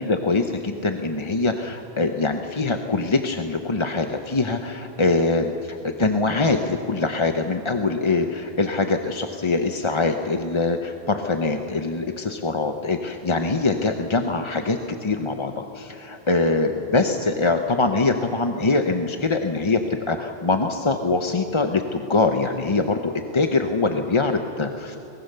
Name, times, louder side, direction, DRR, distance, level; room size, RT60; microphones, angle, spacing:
voice 1, 0.0-25.0, left 3 dB, 30° left, 5 dB, 0.8 m, -23 dB
23.0 x 20.5 x 6.7 m, 2.9 s
omnidirectional pair, 1.1 m